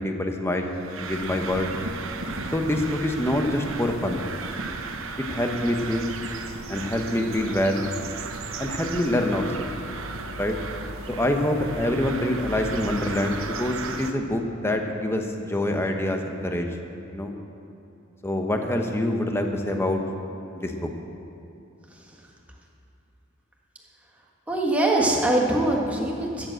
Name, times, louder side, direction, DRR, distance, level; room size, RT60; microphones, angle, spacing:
voice 1, 0.0-1.7 2.5-4.2 5.3-6.1 6.7-7.9 8.6-9.7 10.4-10.6 11.1-16.7 17.1-17.3 18.2-20.0 20.5-20.9, left 1 dB, 10° left, 4 dB, 0.9 m, -26 dB
sound 1, 0.7-14.1, right 3 dB, 75° right, 0.9 m, -34 dB
voice 2, 21.9-22.2 24.5-26.5, right 1 dB, 5° right, -2 dB, 1.6 m, -23 dB
13.0 x 7.7 x 7.7 m, 2.8 s
head